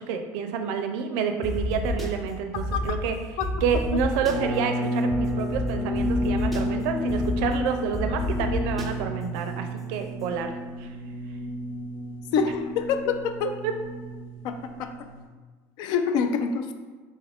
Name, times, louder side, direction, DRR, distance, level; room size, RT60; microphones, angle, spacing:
voice 1, 0.0-3.2 3.6-10.5 10.8-10.9 13.6-13.7, right 6 dB, 75° right, 6 dB, 0.4 m, -28 dB
sound 1, 1.4-2.1 2.6-2.9 3.4-4.3 5.1-5.2 5.5-5.6 5.9-6.6 7.1-7.5 7.9-8.9, left 2 dB, ahead, 0.5 m, -29 dB
sound 2, 4.3-15.2, left 1 dB, 85° left, 1.1 m, -31 dB
voice 2, 12.3-13.5 14.4-14.9 15.8-16.7, left 6 dB, 65° left, 8 dB, 0.4 m, -26 dB
4.2 x 2.4 x 3.4 m, 1.4 s
cardioid pair, 130°, 8 cm